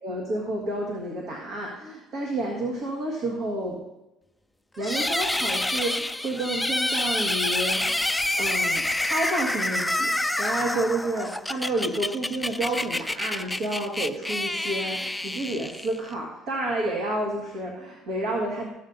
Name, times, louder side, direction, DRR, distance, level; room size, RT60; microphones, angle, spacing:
voice 1, 0.0-3.8 4.8-18.7, right 1 dB, 65° right, -1 dB, 1.7 m, -30 dB
sound 1, 4.8-16.1, left 1 dB, 10° left, 0.4 m, -28 dB
14.0 x 7.3 x 2.7 m, 0.92 s
supercardioid pair, 70°, 0 cm